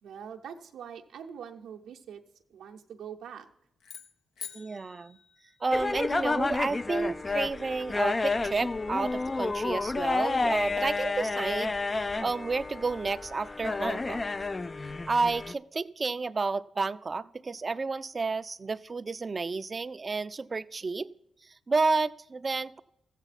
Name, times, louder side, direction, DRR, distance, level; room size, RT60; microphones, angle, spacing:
voice 1, 0.0-2.2 2.5-3.5, right 8 dB, 80° right, 2 dB, 0.7 m, -43 dB
sound 1, 3.8-6.1, left 7 dB, 80° left, 0.7 m, -46 dB
voice 2, 4.5-5.2 5.6-14.2 15.1-21.1 21.4-22.8, right 3 dB, 40° right, 15 dB, 0.4 m, -31 dB
sound 2, 5.7-15.5, left 3 dB, 35° left, 0.3 m, -30 dB
14.0 x 8.1 x 4.1 m, 0.81 s
supercardioid pair, 50°, 0 cm